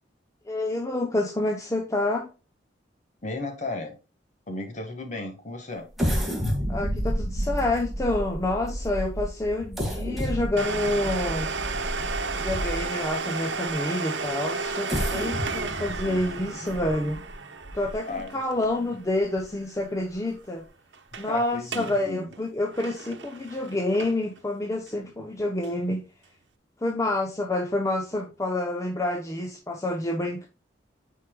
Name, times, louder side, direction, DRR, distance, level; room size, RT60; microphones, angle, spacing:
voice 1, 0.5-2.3 6.7-11.5 12.3-17.2 17.7-20.6 21.2-26.0 26.8-30.5, left 1 dB, 15° left, 0.7 m, -28 dB
voice 2, 3.2-4.0 4.5-5.9 18.1-18.9 21.1-22.3, left 2 dB, 40° left, 1.7 m, -35 dB
sound 1, 5.9-13.1 13.7-13.8 14.7-18.2 18.7-18.8 19.2-19.4, equal, ahead, 1.8 m, -31 dB
Domestic sounds home sounds, 10.6-20.0 20.3-20.4 20.9-21.3 21.6-22.0 22.3-24.4 24.9-25.0 25.6-25.7, right 4 dB, 80° right, 0.9 m, -33 dB
9.3 x 4.7 x 2.3 m
head